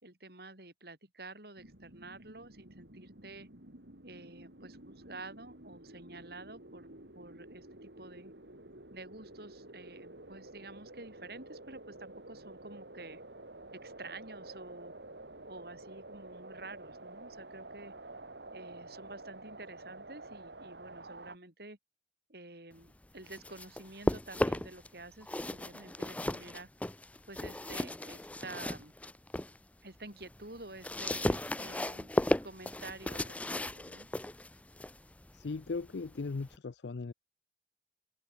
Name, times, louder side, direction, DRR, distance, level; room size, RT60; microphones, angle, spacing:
voice 1, 0.0-3.5 4.0-6.9 7.1-8.3 8.9-13.2 13.7-14.9 15.5-17.9 18.5-21.8 22.3-26.7 27.3-28.9 29.8-32.1 32.4-34.1, right 2 dB, 60° right, 5.6 m, -49 dB
sound 1, 1.6-21.4, right 2 dB, 75° right, 4.3 m, -50 dB
sound 2, 23.0-24.9 25.2-29.6 30.0-36.6, left 1 dB, 10° left, 0.4 m, -35 dB
voice 2, 35.3-37.1, left 4 dB, 75° left, 0.5 m, -38 dB
open air
head